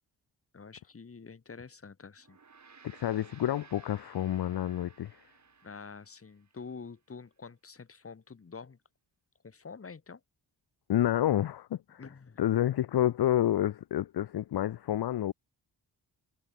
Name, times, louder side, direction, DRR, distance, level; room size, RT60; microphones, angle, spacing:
voice 1, 0.5-2.4 2.6-2.8 5.6-8.8 9.4-10.2 12.0-12.4, left 5 dB, 30° left, 2.0 m, -47 dB
Gong, 2.2-6.8, right 5 dB, 40° right, 4.7 m, -57 dB
voice 2, 2.9-5.2 10.9-12.0 12.4-15.3, left 12 dB, 60° left, 0.7 m, -29 dB
wide cardioid pair, 145°, 43 cm